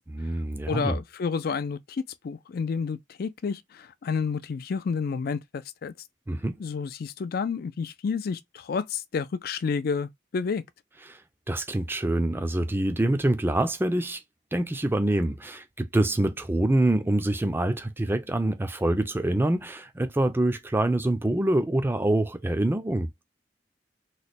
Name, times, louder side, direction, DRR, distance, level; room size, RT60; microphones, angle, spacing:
voice 1, 0.1-1.0 6.3-6.6 11.1-11.2 11.5-14.2 14.5-23.1, right 1 dB, 10° right, 0.4 m, -25 dB
voice 2, 0.7-5.9 6.6-10.6, left 5 dB, 55° left, 0.4 m, -30 dB
3.1 x 2.2 x 4.0 m
head